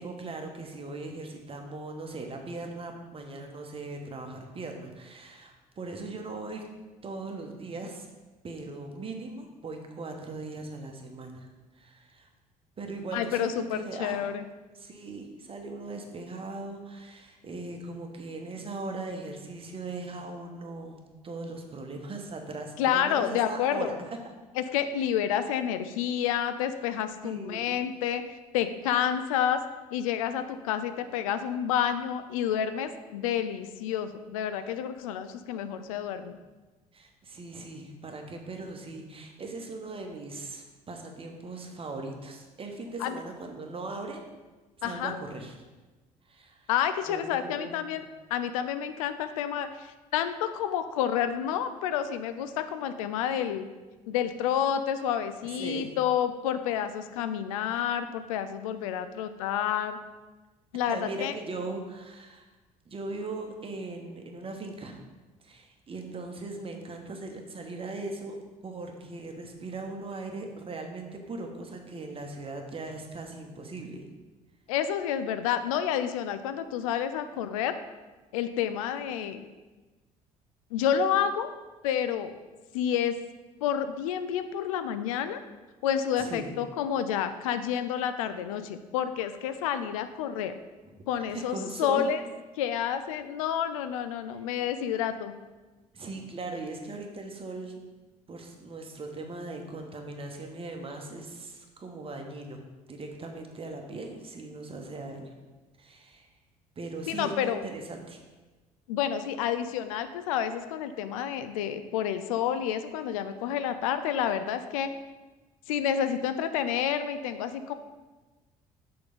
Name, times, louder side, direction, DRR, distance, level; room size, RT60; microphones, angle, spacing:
voice 1, 0.0-6.7 7.0-8.1 8.4-11.5 11.8-12.3 12.8-14.2 14.7-24.2 27.2-27.7 36.9-44.2 44.8-45.5 46.3-46.7 47.1-48.0 55.4-56.0 60.9-62.5 62.9-65.0 65.4-74.1 86.2-86.6 90.9-91.0 91.3-92.1 95.9-97.8 98.3-102.6 102.9-105.3 105.8-106.3 106.8-108.2, right 3 dB, 30° right, 3 dB, 1.1 m, -39 dB
voice 2, 13.1-14.4 22.8-24.0 24.6-28.2 28.5-29.6 29.9-36.4 43.0-43.2 44.8-45.2 46.7-48.0 48.3-53.7 54.1-60.0 60.7-61.3 74.7-77.7 78.3-79.4 80.7-81.5 81.8-82.4 82.7-83.2 83.6-85.4 85.8-90.6 91.1-92.2 92.6-95.3 107.1-107.6 108.9-114.9 115.7-117.7, left 9 dB, 70° left, 11 dB, 0.4 m, -29 dB
6.6 x 3.8 x 5.3 m, 1.2 s
figure-of-eight pair, 55°, 18 cm